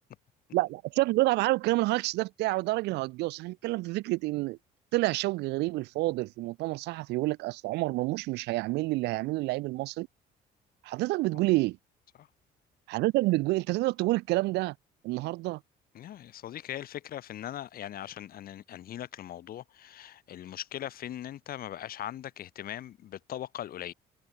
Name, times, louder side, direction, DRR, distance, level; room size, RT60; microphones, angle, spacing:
voice 1, 0.5-4.6 4.9-10.1 10.8-11.8 12.9-14.8 15.0-15.6, right 20 dB, 90° right, 1.9 m, -28 dB
voice 2, 15.9-23.9, left 11 dB, 60° left, 3.6 m, -40 dB
cardioid pair, 110°, 17 cm